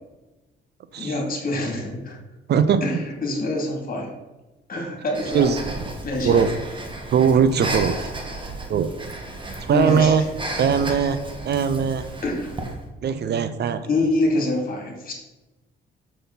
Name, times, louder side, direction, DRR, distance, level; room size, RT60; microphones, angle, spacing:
voice 1, 1.0-2.2 2.8-4.1 4.7-5.6 6.0-6.5 9.7-10.1 12.2-12.6 13.8-15.1, left 2 dB, 45° left, 1 dB, 2.5 m, -25 dB
voice 2, 2.5-2.8 5.3-5.6 6.2-6.5 7.1-8.1 8.7-8.9 9.7-10.2 10.6-11.2 11.4-12.1 13.0-13.8, right 7 dB, 55° right, 11 dB, 0.6 m, -20 dB
Breathing, 5.1-12.8, right 2 dB, 25° right, 1.5 m, -33 dB
6.8 x 6.5 x 4.0 m, 1.1 s
cardioid pair, 90°, 20 cm